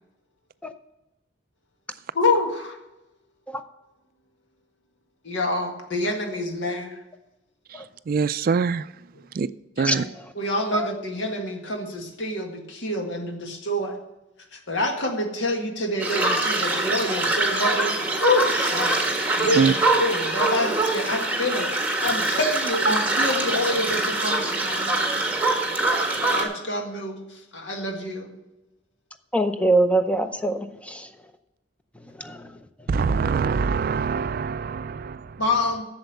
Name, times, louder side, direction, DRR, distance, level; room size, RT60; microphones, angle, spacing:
voice 1, 2.1-2.8 5.2-7.0 9.8-10.1 10.4-14.0 14.5-18.9 19.3-21.7 22.0-25.0 26.3-28.3 35.4-35.8, left 2 dB, 80° left, 3 dB, 1.8 m, -27 dB
voice 2, 8.1-8.8 9.4-9.5 9.8-10.0 19.5-19.7 32.9-35.3, right 5 dB, 50° right, 16 dB, 0.3 m, -23 dB
sound 1, 16.0-26.4, right 2 dB, 10° right, 1.4 m, -24 dB
voice 3, 29.3-31.1 32.2-32.5, right 1 dB, 5° left, 8 dB, 0.6 m, -23 dB
8.0 x 7.1 x 6.7 m, 0.98 s
head